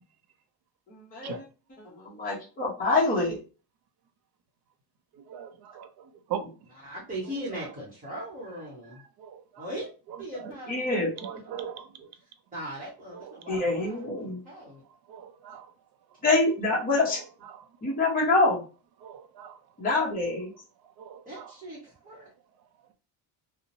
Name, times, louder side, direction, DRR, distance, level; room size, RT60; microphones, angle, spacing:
voice 1, 0.9-1.4 1.8-3.4 10.7-11.1 13.5-14.4 16.2-17.2 17.8-18.6 19.8-20.5, left 2 dB, 20° left, 0.8 m, -26 dB
voice 2, 5.3-6.4 9.2-9.6 10.3-10.5 11.2-12.1 13.2-13.3 13.5-13.6 15.1-15.7 19.0-19.6 21.0-21.5, right 8 dB, 55° right, 0.5 m, -40 dB
voice 3, 6.7-9.0 9.6-9.9 10.2-10.9 11.3-11.5 12.5-14.8 21.3-22.3, equal, 20° right, 0.8 m, -39 dB
2.7 x 2.0 x 2.6 m
cardioid pair, 160°, 47 cm